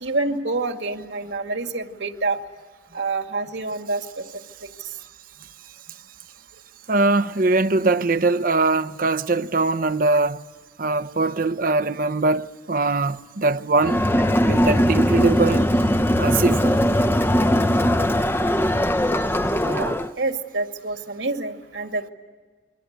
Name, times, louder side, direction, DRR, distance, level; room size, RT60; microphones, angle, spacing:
voice 1, 0.0-2.4 2.9-4.2 19.6-22.1, right 3 dB, 75° right, 2.1 m, -27 dB
voice 2, 6.9-10.4 10.8-14.0 14.5-15.7 16.2-16.8, right 3 dB, 45° right, 0.7 m, -21 dB
Crowd, 13.8-20.1, equal, 10° left, 0.7 m, -20 dB
29.0 x 23.5 x 8.1 m
head